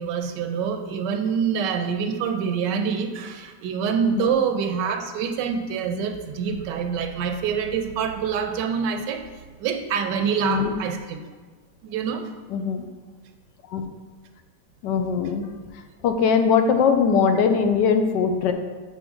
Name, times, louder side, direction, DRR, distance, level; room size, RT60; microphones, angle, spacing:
voice 1, 0.0-9.2 9.6-11.3 11.8-12.3, right 6 dB, 80° right, 7 dB, 1.2 m, -26 dB
voice 2, 12.5-12.8 13.7-13.8 14.8-15.5 16.0-18.5, left 6 dB, 80° left, 6 dB, 1.3 m, -21 dB
7.0 x 5.5 x 3.6 m, 1.4 s
omnidirectional pair, 2.0 m